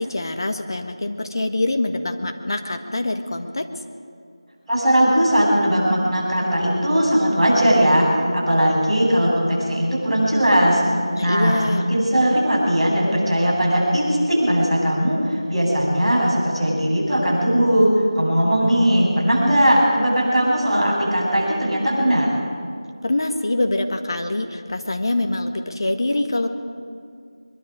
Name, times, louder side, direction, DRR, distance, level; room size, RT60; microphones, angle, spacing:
voice 1, 0.0-3.7 11.1-11.8 23.0-26.5, left 2 dB, 45° left, 6 dB, 1.5 m, -24 dB
voice 2, 4.7-8.1 8.3-10.8 11.2-22.3, equal, 5° right, -15 dB, 6.8 m, -19 dB
23.0 x 23.0 x 5.1 m, 2.2 s
figure-of-eight pair, 170°, 3 cm